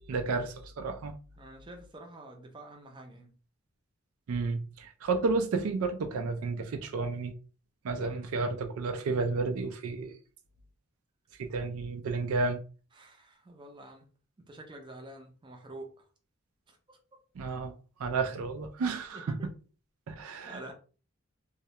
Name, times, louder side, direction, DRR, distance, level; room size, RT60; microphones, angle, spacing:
voice 1, 0.1-1.1 4.3-7.3 7.8-10.2 11.4-12.6 17.4-17.7 18.0-19.4 20.1-20.7, right 3 dB, 85° right, 0.4 m, -31 dB
voice 2, 1.4-3.3 7.9-8.3 12.9-14.1 14.5-15.9 16.7-17.0 19.1-19.2 20.5-20.7, right 1 dB, 25° right, 0.5 m, -48 dB
2.2 x 2.1 x 2.8 m
head